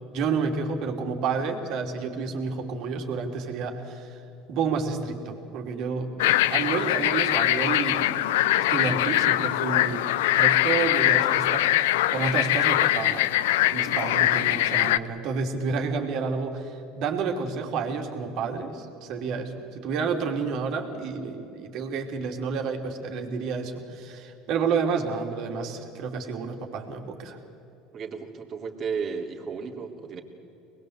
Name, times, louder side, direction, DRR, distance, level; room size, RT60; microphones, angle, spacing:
voice 1, 0.1-4.2 4.5-8.1 8.7-10.1 10.3-13.2 13.6-27.4, right 5 dB, 60° right, 3 dB, 3.2 m, -30 dB
sound 1, 6.2-15.0, left 14 dB, 85° left, 0.6 m, -22 dB
voice 2, 27.9-30.2, right 5 dB, 40° right, 1 dB, 3.0 m, -34 dB
24.5 x 20.5 x 8.2 m, 3.0 s
supercardioid pair, 95°, 0 cm